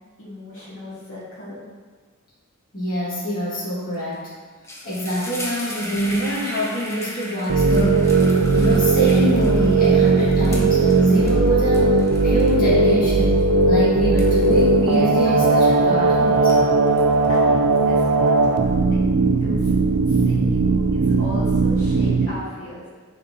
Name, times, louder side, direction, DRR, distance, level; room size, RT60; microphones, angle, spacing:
voice 1, 0.2-1.6 17.3-18.4 18.9-19.0 19.3-19.7 20.1-22.8, left 1 dB, 60° left, -8 dB, 1.7 m, -36 dB
voice 2, 2.7-4.2 4.8-8.3 8.5-13.4 13.7-16.5, equal, 40° left, -8 dB, 1.8 m, -25 dB
sound 1, 3.9-4.2 4.4-16.0 16.3-18.3, equal, 15° left, 0.8 m, -37 dB
sound 2, 7.5-22.3, right 3 dB, 90° right, 0.5 m, -18 dB
Wind instrument woodwind instrument, 14.8-18.9, right 3 dB, 35° right, 0.5 m, -28 dB
10.0 x 3.8 x 2.8 m, 1.5 s
head